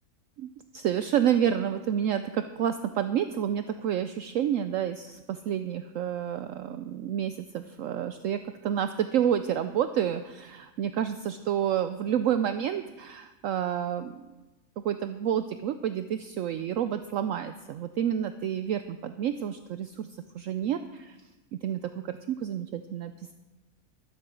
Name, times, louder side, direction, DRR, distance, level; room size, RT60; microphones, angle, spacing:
voice 1, 0.4-14.1 14.8-20.1 20.3-21.2 21.6-23.3, right 9 dB, 70° right, 10 dB, 0.9 m, -29 dB
13.0 x 7.8 x 6.9 m, 1.1 s
omnidirectional pair, 1.6 m